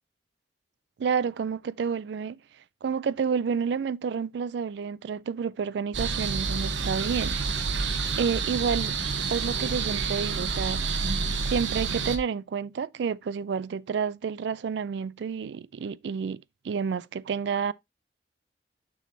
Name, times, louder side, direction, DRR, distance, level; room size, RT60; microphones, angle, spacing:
voice 1, 1.0-2.4 2.8-9.0 9.3-10.9 11.4-17.7, right 6 dB, 65° right, 0.3 m, -30 dB
sound 1, 5.9-12.2, right 5 dB, 85° right, 0.9 m, -29 dB
7.2 x 6.3 x 2.7 m
head